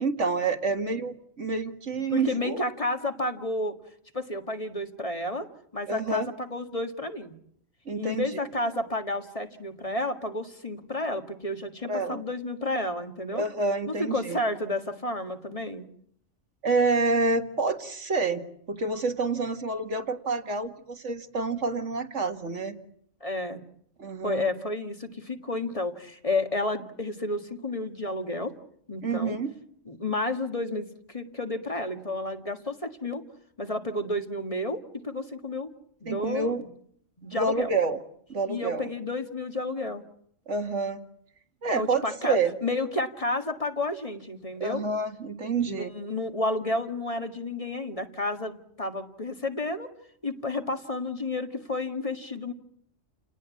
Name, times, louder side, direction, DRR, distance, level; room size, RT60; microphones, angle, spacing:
voice 1, 0.0-2.6 5.9-6.3 7.9-8.3 11.9-12.2 13.3-14.4 16.6-22.8 24.0-24.5 29.0-29.5 36.1-36.6 37.3-38.0 38.3-38.9 40.5-41.0 41.6-42.5 44.6-45.9, right 3 dB, 70° right, 6 dB, 2.2 m, -28 dB
voice 2, 1.9-3.7 4.1-5.5 5.7-7.3 7.9-13.4 13.9-15.9 23.2-23.6 24.2-28.5 28.9-29.4 29.9-33.2 33.6-35.7 36.0-36.7 37.2-37.7 38.5-40.0 41.7-44.8 45.7-49.9 50.2-52.5, left 2 dB, 30° left, 6 dB, 1.8 m, -31 dB
29.5 x 19.0 x 8.4 m, 0.68 s
omnidirectional pair, 1.3 m